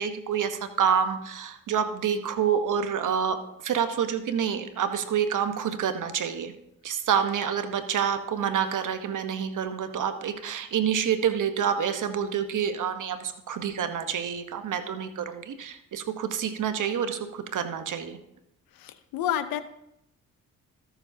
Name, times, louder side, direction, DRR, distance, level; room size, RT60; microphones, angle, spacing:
voice 1, 0.0-6.5 6.8-18.2, right 8 dB, 60° right, 8 dB, 1.0 m, -28 dB
voice 2, 18.8-19.6, left 11 dB, 85° left, 11 dB, 0.7 m, -29 dB
13.5 x 7.1 x 2.7 m, 0.82 s
supercardioid pair, 60°, 35 cm